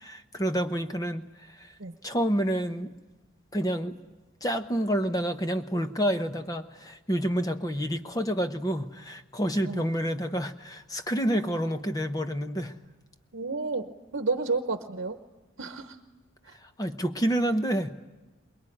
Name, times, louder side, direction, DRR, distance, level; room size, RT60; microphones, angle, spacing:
voice 1, 0.0-1.8 2.0-2.9 3.5-4.0 4.4-12.7 16.6-18.0, equal, 15° left, 7 dB, 0.9 m, -29 dB
voice 2, 13.3-15.2 15.6-16.0 16.4-16.6, right 3 dB, 60° right, 7 dB, 1.0 m, -31 dB
23.5 x 21.5 x 10.0 m, 1.1 s
head